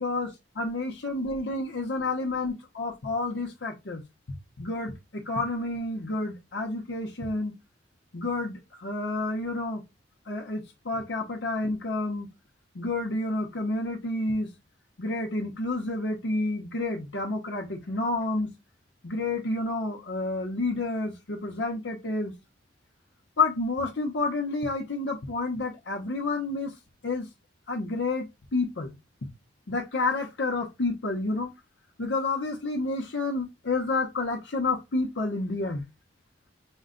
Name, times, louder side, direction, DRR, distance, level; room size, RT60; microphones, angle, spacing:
voice 1, 0.0-4.0 4.6-7.5 8.1-9.8 10.3-12.3 12.7-14.5 15.0-18.5 19.0-22.3 23.4-26.7 27.0-27.3 27.7-28.3 28.5-28.9 29.7-31.5 32.0-35.8, left 2 dB, 90° left, 0.8 m, -29 dB
5.3 x 2.2 x 3.7 m
head